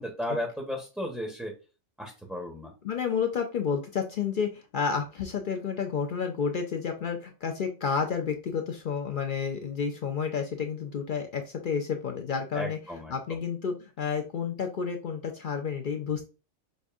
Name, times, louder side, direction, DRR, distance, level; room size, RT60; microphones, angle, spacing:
voice 1, 0.0-1.5 2.0-2.7 12.5-13.4, equal, ahead, 0 dB, 0.6 m, -35 dB
voice 2, 2.8-12.8 13.1-16.2, left 6 dB, 55° left, 4 dB, 0.6 m, -30 dB
5.2 x 2.5 x 2.4 m, 0.31 s
omnidirectional pair, 1.3 m